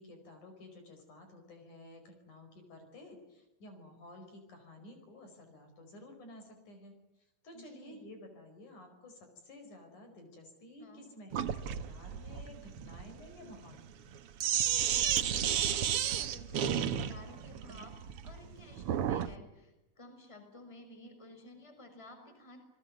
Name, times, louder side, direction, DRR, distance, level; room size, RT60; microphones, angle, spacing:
voice 1, 0.0-14.0, left 1 dB, 55° left, 6 dB, 6.4 m, -53 dB
voice 2, 7.5-8.0 10.8-11.1 15.1-18.0 18.2-22.6, left 1 dB, 10° left, 7 dB, 5.3 m, -53 dB
Sink (filling or washing), 11.3-19.3, right 9 dB, 80° right, 1.3 m, -33 dB
29.0 x 20.5 x 9.5 m, 0.95 s
omnidirectional pair, 4.3 m